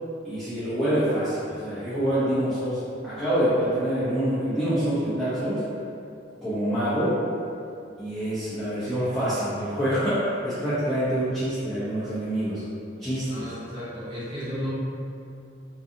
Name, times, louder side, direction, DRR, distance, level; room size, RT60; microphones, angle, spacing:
voice 1, 0.2-5.6 6.4-7.2 8.0-12.6 13.0-13.5, right 1 dB, ahead, -15 dB, 0.5 m, -26 dB
voice 2, 13.3-14.7, equal, 25° right, -11 dB, 0.8 m, -34 dB
2.5 x 2.4 x 2.6 m, 2.5 s
head